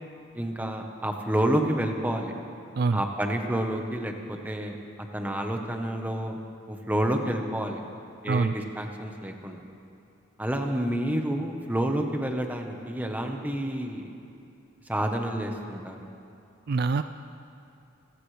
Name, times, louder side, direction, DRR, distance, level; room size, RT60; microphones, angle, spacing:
voice 1, 0.3-2.3 2.9-6.4 6.7-7.8 8.2-9.6 10.4-14.1 14.9-16.0, right 1 dB, 10° right, 3 dB, 1.1 m, -29 dB
voice 2, 16.7-17.0, right 4 dB, 50° right, 11 dB, 0.4 m, -24 dB
27.0 x 16.0 x 3.3 m, 2.6 s
head